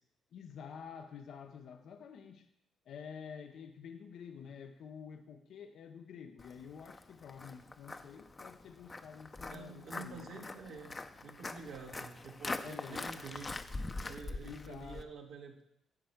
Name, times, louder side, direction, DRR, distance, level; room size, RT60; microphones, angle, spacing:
voice 1, 0.3-2.5 2.8-10.6 12.6-13.1 14.4-15.1, left 7 dB, 70° left, 7 dB, 0.7 m, -49 dB
Walk footsteps, 6.4-15.0, left 3 dB, 25° left, 0.7 m, -44 dB
voice 2, 9.5-10.9 11.2-13.7 14.0-15.6, right 5 dB, 85° right, 0 dB, 1.8 m, -48 dB
11.0 x 4.7 x 7.9 m, 0.77 s
cardioid pair, 90°, 0 cm